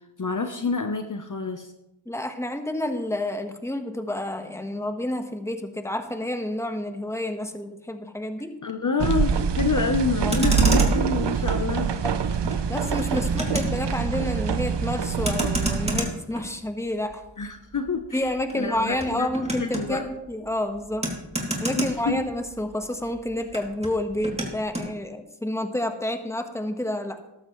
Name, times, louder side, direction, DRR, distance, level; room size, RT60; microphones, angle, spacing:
voice 1, 0.2-1.7 8.6-11.9 17.4-18.2 18.5-19.3 19.6-20.1 21.7-22.3, left 4 dB, 40° left, 6 dB, 0.9 m, -27 dB
voice 2, 2.0-8.6 10.2-10.6 12.0-12.2 12.7-17.5 18.1-21.1 21.6-27.2, left 1 dB, 5° left, 7 dB, 1.3 m, -29 dB
sound 1, 9.0-16.0, right 6 dB, 55° right, 0.8 m, -25 dB
Motor vehicle (road), 10.1-22.7 23.0-24.9, equal, 10° right, 2.8 m, -31 dB
13.5 x 12.0 x 3.2 m, 0.92 s
cardioid pair, 50°, 49 cm